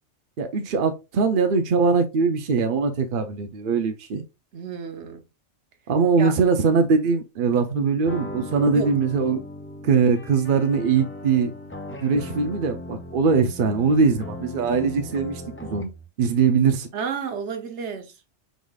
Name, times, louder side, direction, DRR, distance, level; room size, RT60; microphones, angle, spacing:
voice 1, 0.4-4.2 5.9-9.4 9.8-11.5 11.9-15.9 16.2-16.9, right 5 dB, 50° right, 0.8 m, -21 dB
voice 2, 4.5-5.3 6.2-6.3 8.7-9.0 16.9-18.2, right 6 dB, 75° right, 1.1 m, -31 dB
sound 1, 8.0-16.1, left 1 dB, 20° left, 0.4 m, -38 dB
4.9 x 4.0 x 2.4 m
omnidirectional pair, 1.2 m